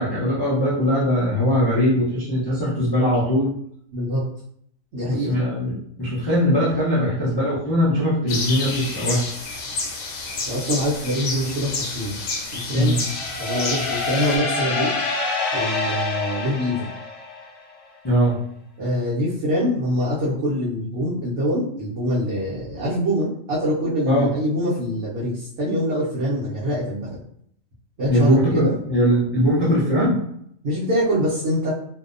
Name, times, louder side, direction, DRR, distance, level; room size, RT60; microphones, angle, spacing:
voice 1, 0.0-3.5 5.0-9.2 12.7-13.0 18.0-18.4 24.0-24.3 28.1-30.2, equal, 30° left, -10 dB, 0.4 m, -20 dB
voice 2, 3.9-4.2 4.9-5.4 10.5-12.2 12.5-13.0 13.4-14.9 15.5-16.9 18.8-27.2 28.0-28.7 30.6-31.7, equal, 65° right, -8 dB, 1.0 m, -24 dB
sound 1, 8.3-14.4, left 3 dB, 90° left, 1.0 m, -30 dB
sound 2, 12.9-17.6, left 3 dB, 65° left, 1.0 m, -26 dB
2.6 x 2.1 x 2.5 m, 0.69 s
omnidirectional pair, 1.4 m